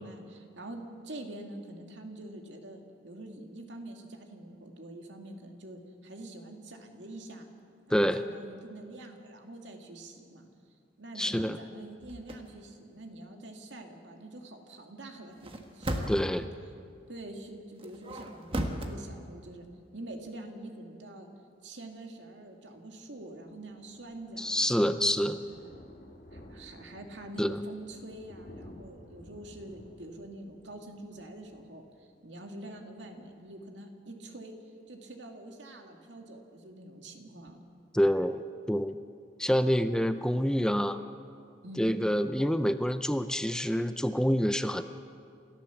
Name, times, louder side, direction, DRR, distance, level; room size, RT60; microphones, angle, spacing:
voice 1, 0.0-7.5 7.9-10.5 11.0-16.5 17.1-19.7 19.9-21.3 21.6-24.5 25.4-25.8 26.3-37.6 41.6-41.9, right 1 dB, 80° right, 3 dB, 2.3 m, -46 dB
voice 2, 7.9-8.2 11.2-11.6 16.1-16.4 24.4-25.4 27.4-27.6 37.9-38.4 38.7-38.9 39.4-41.0 41.8-44.8, equal, 5° left, 10 dB, 0.5 m, -27 dB
sound 1, 12.0-12.4 15.3-16.4 17.8-18.9, right 1 dB, 30° right, 1.5 m, -35 dB
Thunder, 22.9-32.3 32.7-32.9 33.2-33.3 33.5-33.6, equal, 55° left, 3.5 m, -53 dB
29.0 x 14.0 x 7.2 m, 2.4 s
head